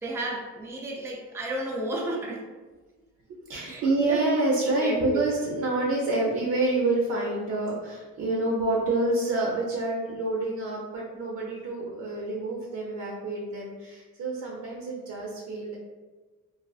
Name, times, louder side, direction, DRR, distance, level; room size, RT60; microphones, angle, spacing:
voice 1, 0.0-2.4 3.6-4.2 4.8-5.2, right 1 dB, 10° right, -2 dB, 0.4 m, -33 dB
voice 2, 3.4-15.8, right 2 dB, 60° right, -3 dB, 0.5 m, -27 dB
2.4 x 2.4 x 2.3 m, 1.3 s
cardioid pair, 90°, 30 cm